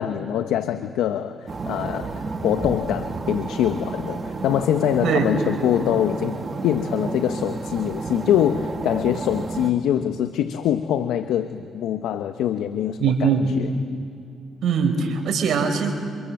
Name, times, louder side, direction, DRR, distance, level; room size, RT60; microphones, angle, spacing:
voice 1, 0.0-6.4 6.6-13.7, left 10 dB, 80° left, 8 dB, 1.0 m, -24 dB
sound 1, 1.5-9.7, right 3 dB, 40° right, 2.1 m, -31 dB
voice 2, 13.0-13.5 14.6-15.9, right 6 dB, 70° right, 4 dB, 5.1 m, -21 dB
28.0 x 26.5 x 7.7 m, 2.6 s
supercardioid pair, 60°, 0 cm